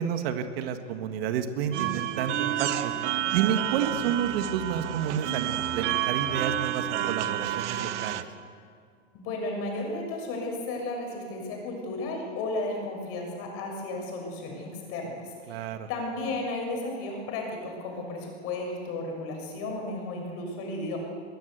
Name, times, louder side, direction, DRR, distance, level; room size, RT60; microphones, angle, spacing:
voice 1, 0.0-2.9 3.3-8.3 15.5-15.9, right 8 dB, 50° right, 8 dB, 1.7 m, -30 dB
sound 1, 1.7-8.2, right 12 dB, 65° right, 1.4 m, -29 dB
voice 2, 9.1-15.6 15.9-21.0, left 2 dB, 35° left, 1 dB, 6.7 m, -34 dB
23.5 x 20.5 x 8.1 m, 2.2 s
supercardioid pair, 145°, 38 cm